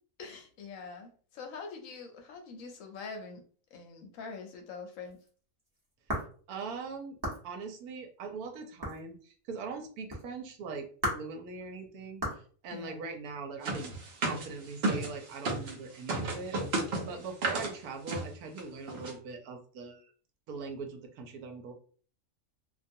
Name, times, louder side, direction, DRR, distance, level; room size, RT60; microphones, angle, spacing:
voice 1, 0.2-3.4 3.7-5.2 12.7-13.0, left 4 dB, 70° left, 4 dB, 0.9 m, -44 dB
sound 1, 4.7-4.8 5.0-6.5 7.2-7.4 8.8-9.3 10.1-10.2 11.0-11.3 12.2-12.5, equal, 20° right, 0.7 m, -35 dB
voice 2, 6.5-7.2 7.4-13.9 14.2-16.6 17.0-20.1 20.5-21.7, right 4 dB, 80° right, 4 dB, 1.1 m, -41 dB
sound 2, 13.6-15.7 16.1-17.7 18.1-18.3 18.6-18.7 18.9-19.1, right 2 dB, 60° right, 0.8 m, -32 dB
2.4 x 2.3 x 2.6 m, 0.43 s
omnidirectional pair, 1.6 m